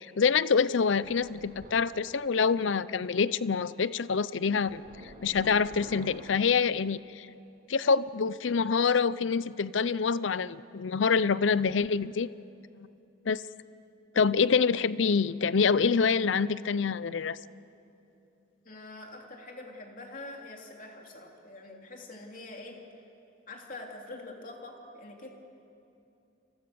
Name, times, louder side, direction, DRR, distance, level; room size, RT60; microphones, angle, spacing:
voice 1, 0.0-7.3 7.7-12.3 12.8-12.9 13.3-13.4 14.1-17.4, left 5 dB, 80° left, 17 dB, 0.6 m, -26 dB
sound 1, 1.0-2.1 4.7-6.4, right 1 dB, 50° right, 4.5 m, -49 dB
voice 2, 18.6-22.8 23.5-25.3, left 2 dB, 45° left, 1 dB, 3.2 m, -45 dB
30.0 x 24.5 x 7.0 m, 2.8 s
head